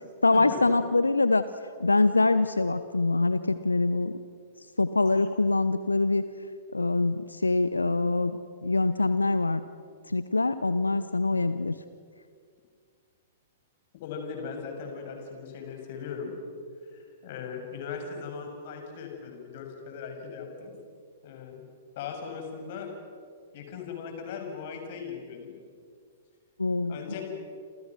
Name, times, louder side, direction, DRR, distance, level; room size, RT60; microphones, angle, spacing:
voice 1, 0.2-1.5 1.8-4.2 4.6-6.2 6.7-9.6 10.1-11.7 26.6-27.0, left 3 dB, 80° left, 13 dB, 0.9 m, -24 dB
voice 2, 13.9-16.3 16.9-20.7 21.2-22.9 23.5-25.5 26.9-27.2, left 6 dB, 45° left, 3 dB, 7.0 m, -39 dB
28.5 x 28.5 x 6.3 m, 2.2 s
figure-of-eight pair, 105°, 0 cm